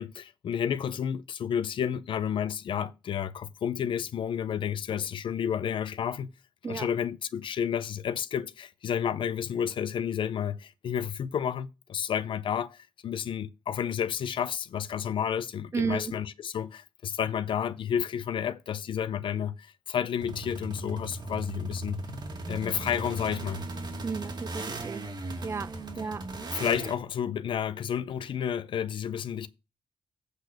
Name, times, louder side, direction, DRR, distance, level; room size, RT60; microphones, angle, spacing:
voice 1, 0.0-6.3 6.6-22.0 22.5-23.7 26.5-29.5, left 8 dB, 75° left, 0.7 m, -31 dB
voice 2, 15.7-16.1 24.0-25.0 25.4-25.7 26.0-26.2, right 5 dB, 30° right, 0.3 m, -32 dB
sound 1, 20.2-26.9, right 2 dB, 55° right, 2.5 m, -37 dB
8.1 x 4.1 x 6.6 m
cardioid pair, 60°, 9 cm